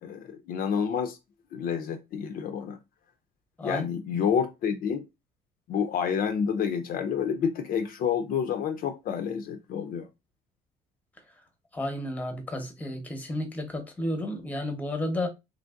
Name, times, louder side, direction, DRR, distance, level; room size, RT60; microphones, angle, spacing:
voice 1, 0.0-1.2 1.5-2.8 3.6-5.0 5.7-10.1, left 7 dB, 60° left, 0.4 m, -29 dB
voice 2, 11.7-15.3, left 1 dB, 10° left, 0.7 m, -32 dB
3.1 x 2.6 x 2.3 m
cardioid pair, 110°, 17 cm